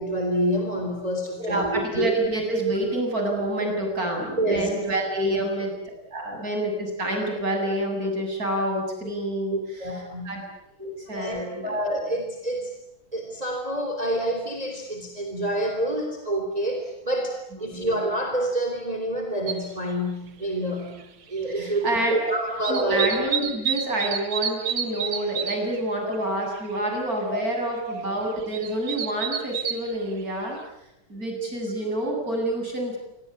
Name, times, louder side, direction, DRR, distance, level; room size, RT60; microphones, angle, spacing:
voice 1, 0.0-2.2 4.4-4.7 5.2-5.4 9.5-10.3 11.1-12.7 13.1-23.1 27.3-27.4, right 1 dB, 15° right, 4 dB, 3.7 m, -27 dB
voice 2, 1.4-5.7 6.1-9.9 10.3-10.4 10.8-11.8 17.5-17.8 21.5-22.1 22.7-30.6 31.1-33.0, right 1 dB, 40° right, 2 dB, 8.7 m, -28 dB
sound 1, 19.5-19.6 21.0-21.1 21.4-22.2 22.5-25.8 26.1-26.2 26.4-26.8 27.2-27.3 28.2-29.9 30.5-30.6, right 8 dB, 80° right, 2.6 m, -29 dB
28.0 x 24.5 x 8.6 m, 0.84 s
omnidirectional pair, 2.3 m